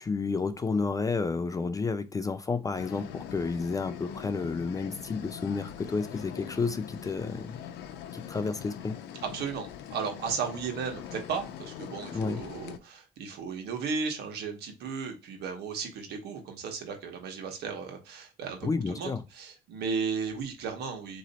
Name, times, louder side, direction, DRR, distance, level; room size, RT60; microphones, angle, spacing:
voice 1, 0.0-7.6 8.1-9.0 12.1-12.4 18.6-19.2, left 4 dB, 20° left, 0.4 m, -31 dB
sound 1, 2.7-12.8, left 9 dB, 90° left, 0.6 m, -42 dB
voice 2, 9.2-21.2, right 5 dB, 75° right, 1.3 m, -35 dB
3.8 x 3.1 x 4.2 m
cardioid pair, 110°, 17 cm